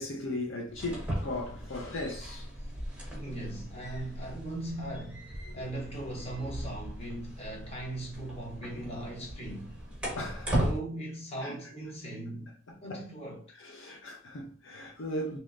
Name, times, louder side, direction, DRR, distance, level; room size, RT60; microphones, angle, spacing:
voice 1, 0.0-2.5 5.5-5.6 10.2-10.6 11.4-11.6 12.9-13.1 13.6-15.4, left 1 dB, 65° left, 0.5 m, -37 dB
sound 1, 0.7-10.8, right 1 dB, 5° right, 0.9 m, -37 dB
voice 2, 3.1-9.8 10.5-12.5 12.8-13.5, right 1 dB, 30° left, 0.9 m, -39 dB
3.2 x 2.9 x 2.4 m
head